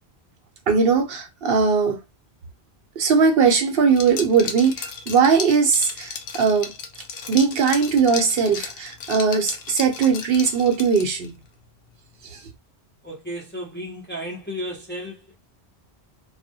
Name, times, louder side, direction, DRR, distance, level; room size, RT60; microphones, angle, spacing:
voice 1, 0.7-2.0 3.0-6.7 7.3-11.3 12.3-12.4, right 5 dB, 65° right, 0.7 m, -19 dB
Liquid, 3.9-11.3, left 6 dB, 65° left, 0.7 m, -34 dB
voice 2, 13.0-15.3, equal, 15° left, 0.4 m, -33 dB
2.3 x 2.1 x 2.6 m
omnidirectional pair, 1.1 m